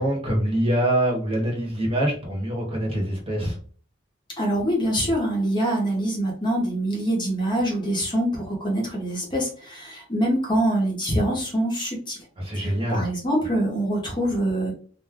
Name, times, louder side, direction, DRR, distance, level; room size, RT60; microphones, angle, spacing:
voice 1, 0.0-3.6 12.4-13.1, right 1 dB, 30° right, -2 dB, 1.0 m, -24 dB
voice 2, 4.4-12.2 12.5-14.7, right 1 dB, 25° left, -2 dB, 0.8 m, -24 dB
2.5 x 2.2 x 3.4 m, 0.43 s
head